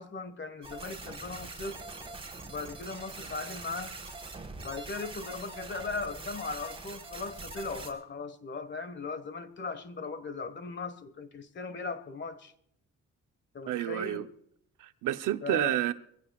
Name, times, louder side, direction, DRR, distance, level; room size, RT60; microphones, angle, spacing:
voice 1, 0.0-1.9 2.4-4.0 4.6-12.5 13.5-14.3 15.4-15.8, left 4 dB, 35° left, 1.4 m, -38 dB
sound 1, 0.6-7.9, right 3 dB, 20° right, 4.0 m, -43 dB
voice 2, 13.7-14.2 14.8-15.9, right 13 dB, 85° right, 0.8 m, -29 dB
24.0 x 15.5 x 2.4 m
cardioid pair, 90°, 30 cm